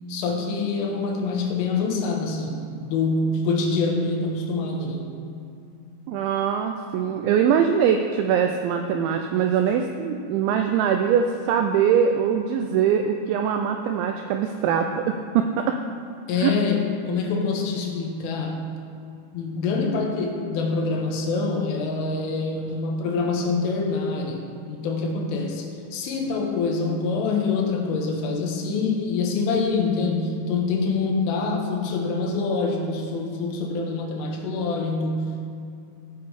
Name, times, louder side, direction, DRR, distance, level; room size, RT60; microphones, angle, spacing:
voice 1, 0.1-5.1 16.3-18.8 19.3-35.5, left 4 dB, 80° left, 1 dB, 3.6 m, -25 dB
voice 2, 6.1-15.8 16.4-16.5, right 8 dB, 85° right, 5 dB, 2.6 m, -22 dB
16.0 x 6.8 x 4.8 m, 2.5 s
omnidirectional pair, 5.8 m